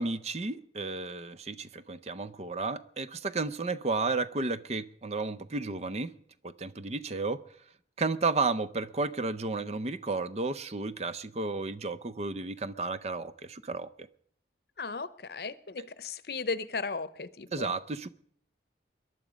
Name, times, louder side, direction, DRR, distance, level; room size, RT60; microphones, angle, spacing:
voice 1, 0.0-6.1 6.4-7.4 8.0-13.9 17.5-18.1, right 3 dB, 40° right, 0.5 m, -32 dB
voice 2, 14.8-17.7, left 4 dB, 60° left, 0.7 m, -36 dB
22.0 x 11.0 x 5.1 m
head